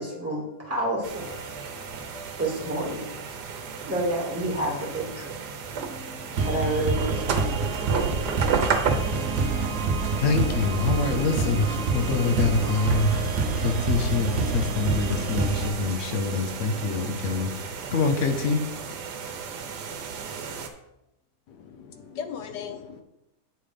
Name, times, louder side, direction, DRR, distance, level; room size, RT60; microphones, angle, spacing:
voice 1, 0.0-1.3 2.4-3.1 3.8-5.4 6.4-8.1, right 1 dB, 10° right, -4 dB, 2.1 m, -29 dB
sound 1, 1.0-20.7, right 6 dB, 90° right, 1.4 m, -34 dB
sound 2, 6.4-15.7, right 4 dB, 55° right, 1.1 m, -27 dB
voice 2, 10.2-11.6 11.9-13.1 13.6-17.5 17.9-18.6, left 4 dB, 60° left, 7 dB, 1.0 m, -25 dB
voice 3, 21.5-23.0, left 7 dB, 90° left, 7 dB, 1.4 m, -38 dB
8.2 x 3.7 x 5.0 m, 0.88 s
omnidirectional pair, 1.7 m